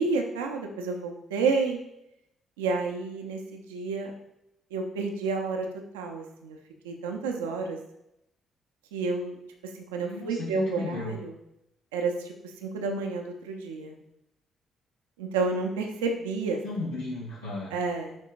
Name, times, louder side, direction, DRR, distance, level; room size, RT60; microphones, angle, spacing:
voice 1, 0.0-1.8 2.6-4.1 4.7-5.7 5.9-6.6 6.8-7.8 8.9-9.3 9.6-11.4 11.9-13.9 15.2-16.6 17.7-18.2, right 4 dB, 80° right, 3 dB, 0.6 m, -30 dB
voice 2, 10.0-11.1 16.6-17.7, left 2 dB, 90° left, -11 dB, 2.4 m, -34 dB
10.5 x 3.6 x 2.5 m, 0.83 s
hypercardioid pair, 45°, 0 cm